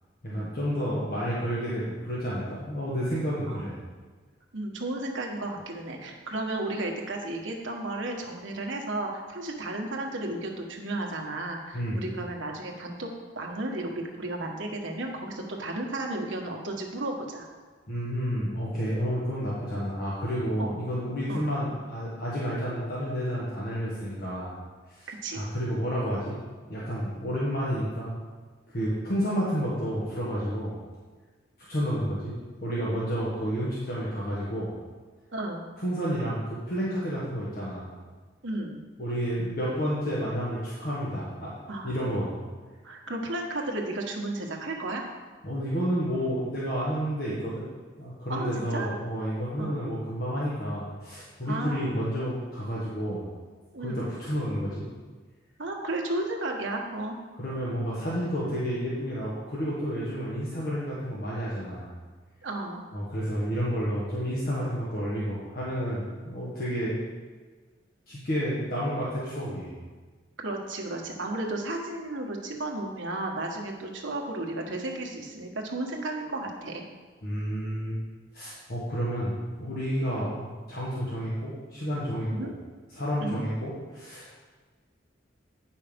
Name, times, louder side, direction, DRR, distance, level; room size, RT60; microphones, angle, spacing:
voice 1, 0.2-3.8 11.7-12.0 17.9-24.6 24.9-26.4 26.7-28.2 28.7-30.8 31.7-32.3 32.6-34.7 35.8-37.9 39.0-41.5 41.8-42.4 45.4-47.7 48.0-53.3 53.8-54.9 57.4-61.9 62.9-67.0 68.1-69.7 77.2-78.0 78.3-82.5 82.9-84.3, equal, 50° left, -7 dB, 1.5 m, -30 dB
voice 2, 4.5-13.1 13.3-17.5 20.6-20.8 21.3-21.4 25.1-25.4 35.3-35.6 38.4-38.8 41.7-42.0 42.8-45.0 48.3-48.9 49.6-49.8 51.5-52.0 53.7-54.1 55.6-57.2 62.4-62.8 70.4-76.8 82.3-82.5 83.2-83.4, right 2 dB, 80° right, 1 dB, 1.3 m, -33 dB
9.0 x 5.7 x 5.2 m, 1.4 s
head